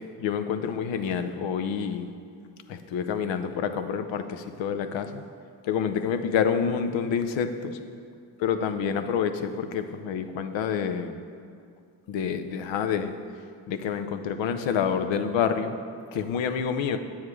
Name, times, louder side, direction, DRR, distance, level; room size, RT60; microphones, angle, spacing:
voice 1, 0.2-2.1 2.7-5.2 5.6-7.8 8.4-11.2 12.1-13.1 13.7-15.7 16.1-17.0, left 7 dB, 75° left, 9 dB, 0.6 m, -28 dB
8.6 x 7.2 x 3.2 m, 2.3 s
supercardioid pair, 50°, 46 cm